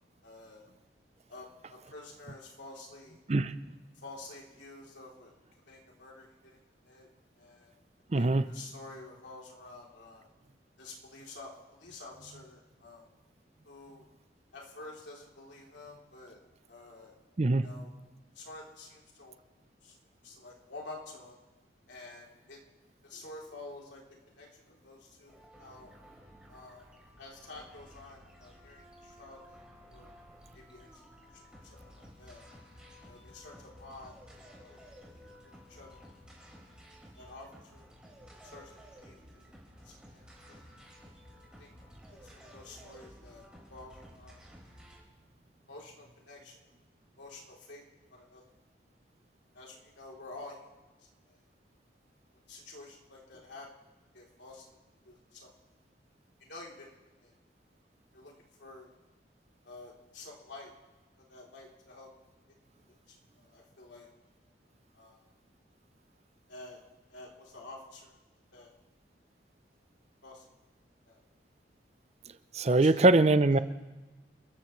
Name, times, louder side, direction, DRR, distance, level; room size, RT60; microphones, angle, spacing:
voice 1, 0.2-0.7 1.3-3.2 4.0-5.3 5.7-6.6 6.8-7.1 7.4-7.7 8.1-10.3 10.8-13.0 13.6-14.0 14.5-16.4 16.7-17.1 17.6-17.9 18.3-19.4 19.8-20.0 20.2-21.4 21.9-22.6 23.0-25.9 26.5-26.9 27.2-30.1 30.5-30.9 31.3-32.4 33.1-34.1 34.5-34.8 35.7-36.0 37.2-37.9 38.4-38.7 39.0-39.2 39.8-40.2 40.5-40.6 41.6-41.7 42.4-44.4 45.7-46.6 47.2-47.8 48.1-48.4 49.5-50.7 51.3-51.4 52.5-53.7 54.1-54.8 55.0-55.5 56.5-56.9 57.2-57.3 58.1-58.3 58.6-58.9 59.6-60.7 61.2-62.1 63.1-64.1 64.9-65.3 66.5-66.8 67.1-68.1 68.5-68.7 70.2-70.4 71.1-71.2 72.7-73.0 73.5-73.6, left 2 dB, 85° left, -2 dB, 3.3 m, -49 dB
voice 2, 8.1-8.5 17.4-17.7 72.5-73.6, right 2 dB, 35° right, 13 dB, 0.5 m, -23 dB
sound 1, 25.3-45.0, equal, 5° right, 3.7 m, -54 dB
28.5 x 14.0 x 3.2 m, 1.2 s
head